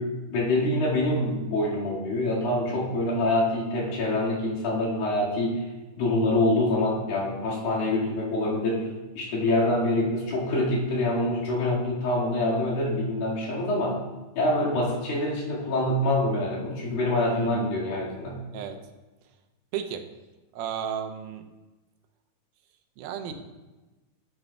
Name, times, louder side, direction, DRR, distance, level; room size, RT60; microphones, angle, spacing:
voice 1, 0.0-5.6 6.0-8.9 9.2-14.0 14.4-18.4, left 1 dB, 75° left, -6 dB, 3.8 m, -25 dB
voice 2, 2.7-3.0 17.3-17.8 18.5-18.8 19.7-20.1 20.5-21.5 23.0-23.3, right 8 dB, 85° right, 6 dB, 2.5 m, -34 dB
14.5 x 8.0 x 2.3 m, 1.1 s
omnidirectional pair, 4.2 m